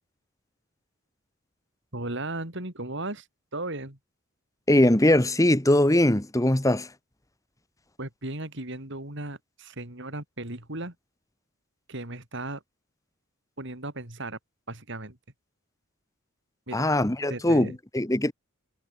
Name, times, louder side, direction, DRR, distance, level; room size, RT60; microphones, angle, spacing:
voice 1, 1.9-3.3 3.5-4.0 8.0-10.9 11.9-12.6 13.6-14.4 14.7-15.2 16.7-16.9 17.3-17.8, right 2 dB, 60° right, 4.4 m, -36 dB
voice 2, 4.7-6.9 16.7-18.3, left 1 dB, 15° left, 1.3 m, -21 dB
head